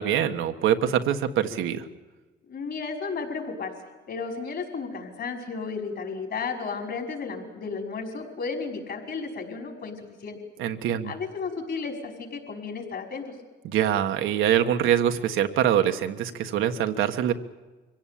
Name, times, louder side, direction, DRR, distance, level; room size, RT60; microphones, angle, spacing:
voice 1, 0.0-1.9 10.6-11.1 13.6-17.3, right 10 dB, 85° right, 7 dB, 1.5 m, -24 dB
voice 2, 2.5-3.7 4.1-10.4 11.0-13.3, left 4 dB, 55° left, 3 dB, 5.5 m, -33 dB
24.5 x 17.0 x 8.6 m, 1.2 s
cardioid pair, 90°, 20 cm